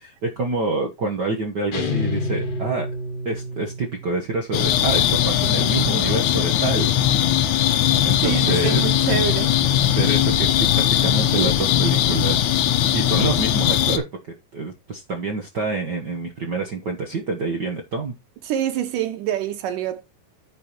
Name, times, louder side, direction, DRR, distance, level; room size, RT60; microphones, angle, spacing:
voice 1, 0.0-2.9 3.2-7.7 8.0-8.8 10.0-12.6 12.9-14.0 14.5-18.1, right 3 dB, 70° right, 1.0 m, -27 dB
sound 1, 1.7-4.3, left 2 dB, 55° left, 3.1 m, -28 dB
sound 2, 4.5-14.0, left 11 dB, 70° left, 2.2 m, -19 dB
voice 2, 8.2-9.5 18.5-20.0, right 10 dB, 85° right, 2.7 m, -26 dB
14.5 x 5.3 x 3.0 m
omnidirectional pair, 3.7 m